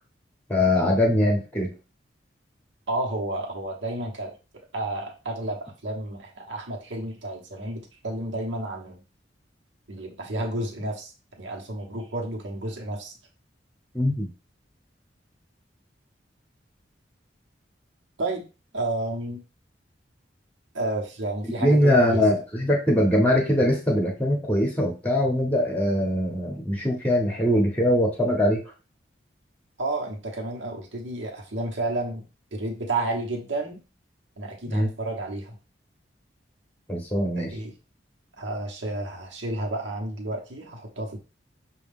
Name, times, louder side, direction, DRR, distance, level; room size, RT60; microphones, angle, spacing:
voice 1, 0.5-1.7 13.9-14.3 21.6-28.6 34.7-34.9 36.9-37.5, left 1 dB, 10° left, 0 dB, 0.8 m, -22 dB
voice 2, 2.9-9.0 9.9-13.1 18.2-18.4 18.7-19.4 20.7-22.2 29.8-32.3 32.5-33.8 34.4-35.6 37.3-37.7 38.4-41.2, right 2 dB, 85° right, 0 dB, 1.0 m, -31 dB
6.1 x 2.3 x 3.4 m, 0.32 s
head